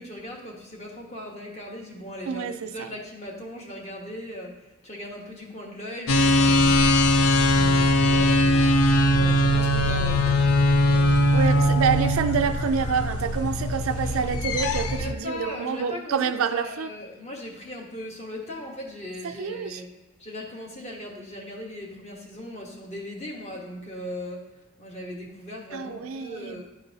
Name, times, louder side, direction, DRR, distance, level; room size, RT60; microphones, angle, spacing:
voice 1, 0.0-6.9 7.5-8.8 9.1-10.4 15.0-16.2 16.5-19.9 20.2-24.5 24.8-26.6, left 1 dB, 30° left, -1 dB, 1.1 m, -38 dB
voice 2, 2.3-2.9 11.3-16.9 19.2-19.8 25.7-26.6, right 6 dB, 75° right, 9 dB, 0.4 m, -27 dB
sound 1, 6.1-15.1, left 1 dB, 90° left, 0.5 m, -21 dB
10.5 x 3.9 x 2.7 m, 1.1 s
head